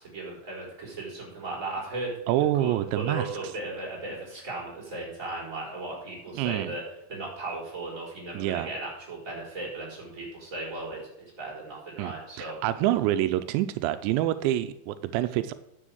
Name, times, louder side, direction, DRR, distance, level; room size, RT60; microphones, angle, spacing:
voice 1, 0.0-2.2 2.6-6.8 7.1-11.1 11.4-12.6, right 2 dB, 20° right, -4 dB, 4.4 m, -36 dB
voice 2, 2.3-3.3 6.3-6.7 8.3-8.7 12.0-12.1 12.4-15.5, right 13 dB, 85° right, 11 dB, 2.9 m, -26 dB
10.0 x 6.8 x 7.7 m, 0.81 s
omnidirectional pair, 5.1 m